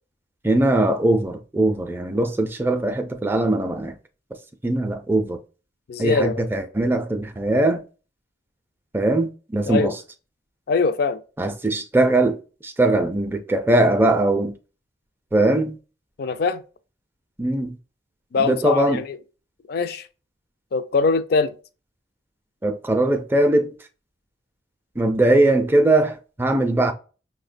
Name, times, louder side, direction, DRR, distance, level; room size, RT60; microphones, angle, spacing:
voice 1, 0.4-4.0 4.6-5.4 6.0-7.8 8.9-10.0 11.4-12.4 12.6-14.5 15.3-15.8 17.4-17.8 18.4-19.0 22.6-23.7 25.0-26.9, right 2 dB, 10° right, 0.3 m, -20 dB
voice 2, 5.9-6.4 9.7-9.9 10.7-11.2 16.2-16.6 18.3-19.2 19.7-20.0 20.7-21.5, left 4 dB, 60° left, 0.4 m, -22 dB
5.5 x 2.1 x 2.4 m
head